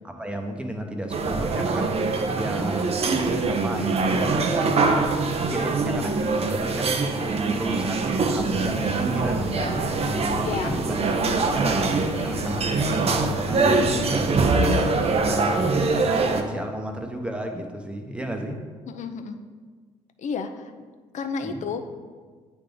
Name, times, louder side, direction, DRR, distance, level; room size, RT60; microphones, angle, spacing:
voice 1, 0.0-1.9 2.3-7.0 7.5-11.1 11.3-14.8 15.1-15.6 16.0-18.6 21.4-21.6, right 1 dB, 5° right, 3 dB, 0.9 m, -33 dB
sound 1, 1.1-16.4, right 3 dB, 40° right, 0.7 m, -23 dB
sound 2, 8.3-14.2, equal, 80° right, 1.5 m, -34 dB
voice 2, 10.4-10.8 18.9-19.4 20.2-20.7 21.1-21.9, left 5 dB, 55° left, 8 dB, 0.6 m, -31 dB
8.6 x 3.5 x 3.8 m, 1.5 s
hypercardioid pair, 60°, 15 cm